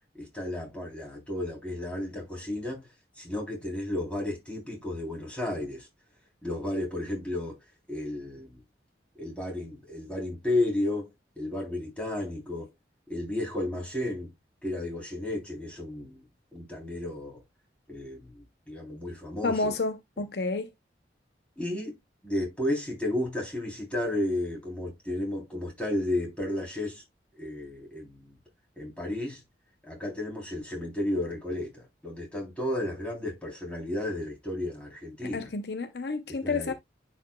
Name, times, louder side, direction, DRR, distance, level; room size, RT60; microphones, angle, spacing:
voice 1, 0.2-2.9 3.2-5.9 6.4-7.6 7.9-8.6 9.2-11.1 11.4-12.7 13.1-14.3 14.6-16.2 16.5-17.4 17.9-19.7 21.6-21.9 22.2-27.0 27.3-28.3 28.8-29.4 29.8-35.5 36.4-36.7, left 1 dB, 5° left, 3.3 m, -33 dB
voice 2, 19.4-20.7 35.3-36.7, left 3 dB, 65° left, 0.7 m, -30 dB
10.5 x 5.1 x 2.3 m
head